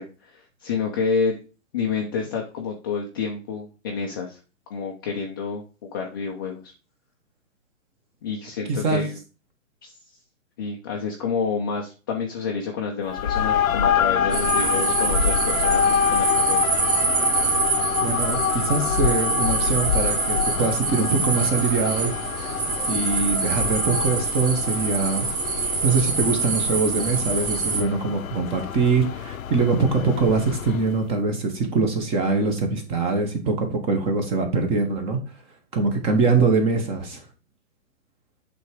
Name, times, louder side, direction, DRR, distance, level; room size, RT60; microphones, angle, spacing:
voice 1, 0.0-1.4 1.7-4.4 4.7-6.7 8.2-9.1 9.8-9.9 10.6-16.6, left 5 dB, 15° left, -1 dB, 0.5 m, -29 dB
voice 2, 8.7-9.0 18.0-22.1 22.9-25.3 25.8-35.2 35.7-37.2, right 4 dB, 15° right, 5 dB, 0.9 m, -23 dB
sound 1, 13.0-31.0, left 8 dB, 85° left, 0.8 m, -26 dB
sound 2, 14.3-27.8, right 5 dB, 40° right, 2.0 m, -25 dB
7.9 x 3.5 x 4.8 m, 0.33 s
hypercardioid pair, 150°, 40 cm